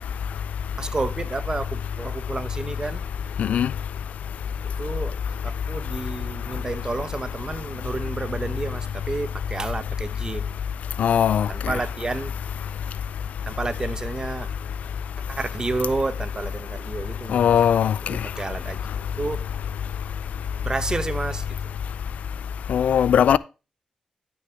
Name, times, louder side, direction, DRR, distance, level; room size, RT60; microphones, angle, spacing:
voice 1, 0.8-3.0 4.8-5.2 5.4-10.6 11.5-12.3 13.4-14.5 15.3-17.5 18.1-19.5 20.6-21.7, right 3 dB, 30° right, 0.9 m, -30 dB
voice 2, 3.4-3.7 11.0-11.5 17.3-17.9 22.7-23.4, left 8 dB, 80° left, 0.4 m, -19 dB
13.0 x 6.2 x 3.3 m
cardioid pair, 80°, 2 cm